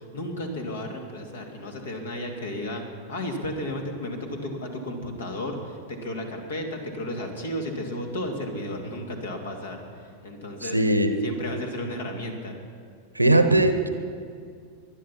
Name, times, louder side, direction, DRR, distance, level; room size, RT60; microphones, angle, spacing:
voice 1, 0.0-2.8 3.1-10.8 11.2-12.6, left 1 dB, 65° left, 3 dB, 2.6 m, -33 dB
voice 2, 10.6-11.1 13.1-13.9, right 1 dB, 85° right, 9 dB, 1.0 m, -20 dB
20.0 x 12.0 x 5.9 m, 2.2 s
figure-of-eight pair, 90°, 0 cm